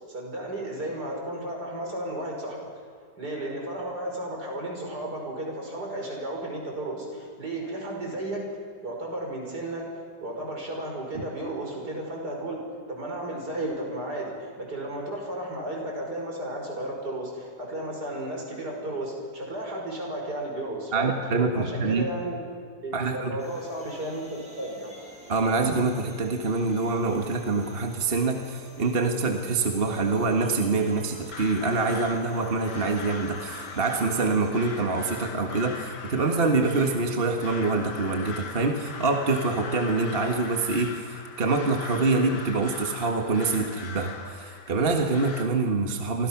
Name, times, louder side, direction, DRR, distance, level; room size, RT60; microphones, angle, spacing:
voice 1, 0.1-2.6 3.2-8.4 8.8-9.9 10.2-12.6 12.9-21.1 21.5-22.6 22.8-24.9, right 1 dB, 70° right, 0 dB, 6.2 m, -33 dB
voice 2, 20.9-22.1 22.9-23.4 25.3-46.3, right 3 dB, 35° right, 3 dB, 1.8 m, -25 dB
sound 1, 23.4-34.5, equal, 5° right, 7.4 m, -49 dB
Crow, 31.3-45.5, left 5 dB, 85° left, 2.3 m, -40 dB
29.5 x 24.5 x 6.0 m, 2.1 s
omnidirectional pair, 1.8 m